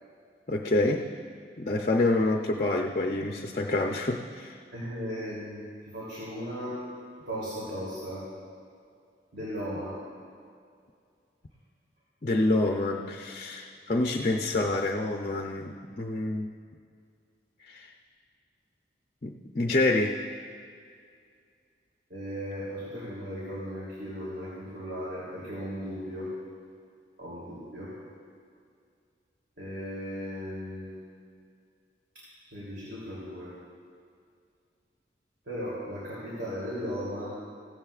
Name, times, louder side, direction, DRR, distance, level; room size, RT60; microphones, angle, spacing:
voice 1, 0.5-1.1 1.6-4.5 12.2-16.5 17.7-17.9 19.2-20.2, left 2 dB, 40° left, 2 dB, 0.6 m, -27 dB
voice 2, 4.7-5.6 5.9-6.8 7.3-8.2 9.3-10.0 22.1-26.3 27.2-27.9 29.6-31.0 32.5-33.5 35.5-37.3, equal, 75° right, -8 dB, 3.1 m, -36 dB
16.5 x 15.0 x 2.4 m, 2.3 s
head